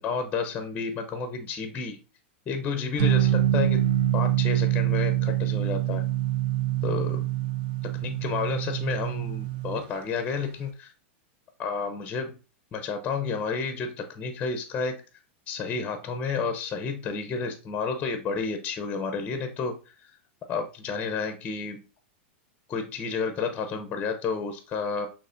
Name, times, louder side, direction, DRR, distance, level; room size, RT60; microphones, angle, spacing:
voice 1, 0.0-2.0 2.5-3.9 4.1-6.0 6.8-7.2 7.9-10.9 11.6-12.4 12.7-15.0 15.5-20.1 20.5-21.8 22.7-25.1, left 5 dB, 25° left, 7 dB, 0.7 m, -31 dB
sound 1, 3.0-9.8, right 12 dB, 50° right, 0.8 m, -25 dB
6.5 x 2.9 x 2.5 m, 0.34 s
hypercardioid pair, 115°, 6 cm